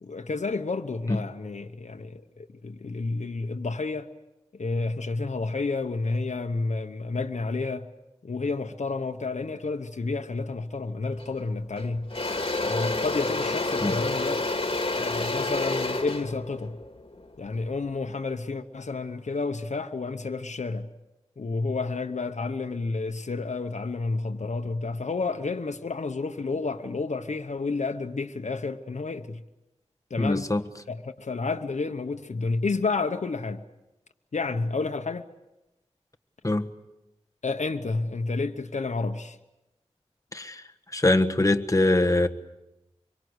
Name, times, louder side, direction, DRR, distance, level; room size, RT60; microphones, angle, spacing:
voice 1, 0.0-4.1 4.6-7.9 8.2-12.1 12.6-14.4 14.9-16.8 17.4-20.9 21.4-29.4 30.1-30.5 30.9-33.6 34.3-35.2 37.4-39.4, left 3 dB, 90° left, 1.0 m, -30 dB
Engine / Drill, 11.2-11.4 11.8-17.9, left 2 dB, 50° left, 2.2 m, -29 dB
voice 2, 30.2-30.6 36.4-36.6 40.3-40.6 40.9-42.3, left 2 dB, 30° left, 1.4 m, -22 dB
26.0 x 23.5 x 8.1 m
wide cardioid pair, 55°, 12 cm